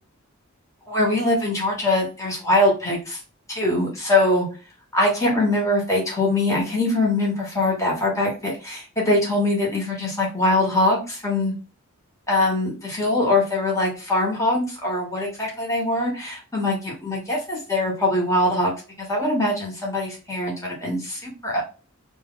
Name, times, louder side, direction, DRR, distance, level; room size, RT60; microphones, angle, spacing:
voice 1, 0.9-3.2 3.5-4.5 4.9-11.5 12.3-18.7 19.0-21.6, left 1 dB, 15° left, -2 dB, 1.0 m, -22 dB
2.9 x 2.2 x 3.7 m, 0.33 s
head